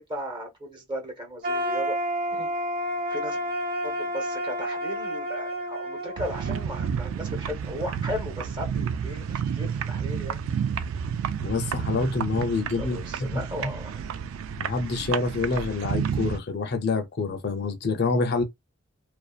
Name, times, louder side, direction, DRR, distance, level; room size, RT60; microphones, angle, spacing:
voice 1, 0.0-2.0 2.3-2.5 3.1-3.4 3.8-10.4 12.8-14.0, equal, 25° right, 0.8 m, -36 dB
sound 1, 1.4-7.3, equal, 55° right, 1.1 m, -30 dB
sound 2, 6.2-16.4, right 7 dB, 85° right, 0.3 m, -30 dB
voice 2, 11.4-13.0 13.3-13.7 14.6-18.4, left 3 dB, 55° left, 0.5 m, -27 dB
2.6 x 2.1 x 2.3 m
head